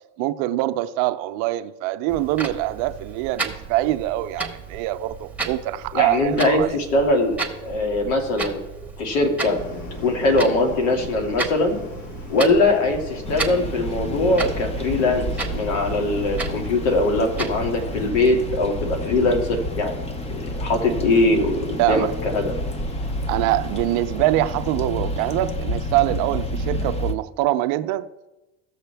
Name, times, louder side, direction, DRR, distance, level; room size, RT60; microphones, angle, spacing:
voice 1, 0.2-6.7 21.8-22.1 23.3-28.1, right 15 dB, 60° right, 0.6 m, -24 dB
Clock, 2.1-18.1, right 4 dB, 5° right, 1.1 m, -34 dB
voice 2, 5.9-7.4 7.6-8.6 9.0-9.6 10.0-11.8 12.3-20.0 20.3-22.5, left 2 dB, 75° left, 2.3 m, -21 dB
sound 1, 9.4-24.1, left 2 dB, 50° left, 1.6 m, -39 dB
sound 2, 13.2-27.1, left 1 dB, 15° left, 0.7 m, -30 dB
16.0 x 6.5 x 3.4 m
supercardioid pair, 115°, 37 cm